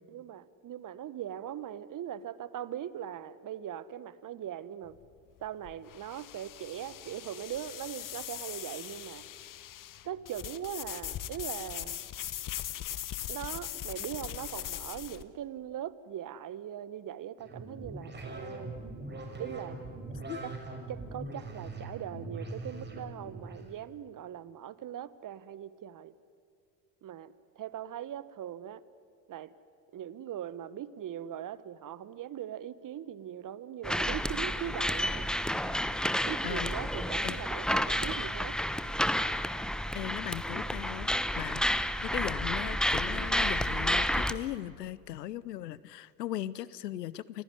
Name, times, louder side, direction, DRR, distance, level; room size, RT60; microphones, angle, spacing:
voice 1, 0.1-5.0 5.4-9.2 10.0-12.0 13.3-18.7 19.4-19.8 20.4-20.5 20.9-26.1 27.0-28.8 29.3-29.5 29.9-35.3 36.2-38.6, right 10 dB, 40° right, 17 dB, 1.2 m, -40 dB
sound 1, 4.9-15.2, left 12 dB, 40° left, 1.2 m, -40 dB
sound 2, 17.4-23.7, right 2 dB, 20° right, 5.8 m, -42 dB
sound 3, 33.8-44.3, equal, ahead, 1.0 m, -30 dB
voice 2, 39.9-41.1 41.4-47.4, left 13 dB, 85° left, 20 dB, 0.8 m, -38 dB
29.0 x 16.5 x 9.8 m, 2.3 s
hypercardioid pair, 65°, 48 cm